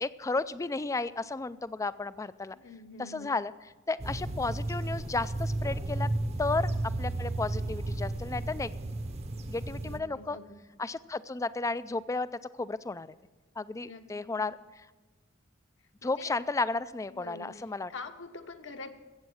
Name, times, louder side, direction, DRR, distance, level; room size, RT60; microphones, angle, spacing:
voice 1, 0.0-2.6 3.1-3.5 3.9-6.1 6.4-6.7 7.0-8.7 9.5-10.4 10.8-12.3 12.6-13.1 13.6-14.6 16.0-17.9, left 3 dB, 15° left, 16 dB, 0.3 m, -33 dB
voice 2, 2.5-3.4 9.5-10.6 13.7-14.0 14.3-14.5 16.0-16.3 17.1-17.6 17.9-18.9, left 3 dB, 65° left, 6 dB, 1.1 m, -46 dB
sound 1, 4.0-10.0, right 2 dB, 30° right, 0.8 m, -33 dB
14.5 x 8.3 x 6.3 m, 1.2 s
head